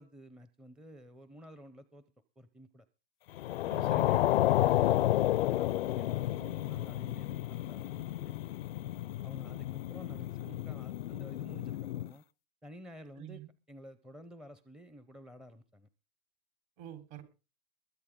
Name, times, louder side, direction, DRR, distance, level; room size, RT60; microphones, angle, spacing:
voice 1, 0.0-2.0 2.4-2.9 4.5-8.4 9.2-12.2 12.6-13.4 13.7-15.9, equal, 5° right, 11 dB, 0.6 m, -52 dB
sound 1, 3.4-12.1, left 14 dB, 80° left, 0.5 m, -31 dB
voice 2, 3.7-4.3 13.2-13.5 16.8-17.2, right 11 dB, 55° right, 6 dB, 4.2 m, -46 dB
21.5 x 8.5 x 3.7 m, 0.32 s
hypercardioid pair, 130°, 29 cm